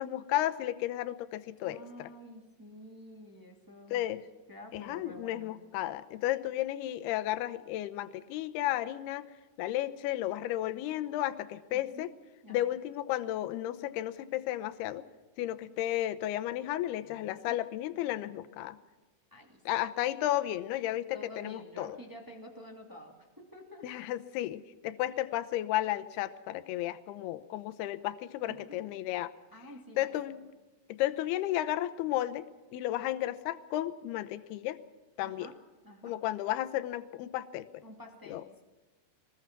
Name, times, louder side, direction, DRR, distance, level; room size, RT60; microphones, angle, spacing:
voice 1, 0.0-2.1 3.9-4.2 4.7-9.3 9.6-12.1 12.5-15.1 15.4-18.8 19.7-22.0 23.8-29.3 30.0-30.4 30.9-34.8 35.2-35.5 36.0-37.7 38.3-38.4, left 14 dB, 75° left, 12 dB, 2.7 m, -33 dB
voice 2, 1.6-4.1 4.5-5.5 11.7-12.1 12.4-12.6 17.3-17.6 19.3-19.6 21.1-23.9 28.4-28.8 29.5-30.1 35.2-35.6 35.8-36.2 37.8-38.6, equal, 10° right, 1 dB, 1.1 m, -49 dB
24.0 x 20.0 x 6.0 m, 1.2 s
omnidirectional pair, 5.0 m